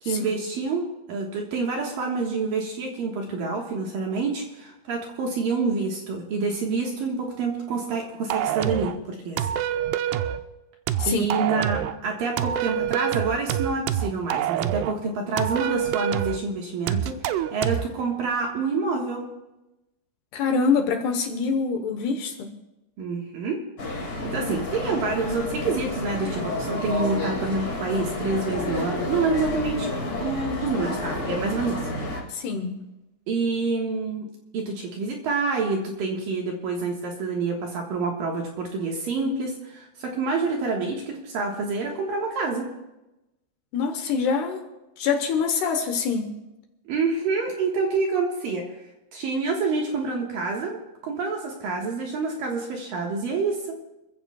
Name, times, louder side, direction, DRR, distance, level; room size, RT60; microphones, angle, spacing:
voice 1, 0.0-9.5 11.1-19.3 23.0-23.6 24.0-29.9 30.2-31.8 33.3-34.3 34.5-42.7 46.9-48.7 49.1-53.8, right 4 dB, 60° right, 0 dB, 2.6 m, -27 dB
sound 1, 8.3-9.0 9.4-10.4 10.9-12.0 12.4-15.0 15.4-16.4 16.9-17.9, right 11 dB, 90° right, 2.3 m, -26 dB
voice 2, 20.3-22.5 32.3-32.8 43.7-44.7 45.0-46.3, left 5 dB, 70° left, 5 dB, 2.8 m, -25 dB
sound 2, 23.8-32.2, left 1 dB, 35° left, 1.7 m, -30 dB
27.0 x 15.0 x 2.3 m, 0.97 s
omnidirectional pair, 5.3 m